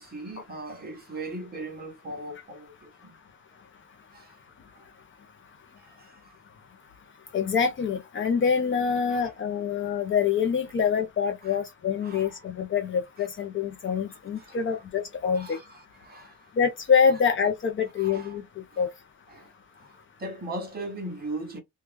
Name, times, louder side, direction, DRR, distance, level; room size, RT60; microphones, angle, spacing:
voice 1, 0.0-3.2 4.1-4.3 4.7-4.8 5.8-6.4 9.1-9.3 11.4-11.5 12.0-12.4 14.4-14.6 15.3-16.5 18.0-18.4 18.7-18.8 19.3-19.9 20.2-21.6, right 2 dB, 30° right, 1.0 m, -39 dB
voice 2, 7.3-15.6 16.6-18.4 18.8-18.9, left 6 dB, 40° left, 0.5 m, -25 dB
3.0 x 2.2 x 3.2 m
cardioid pair, 175°, 32 cm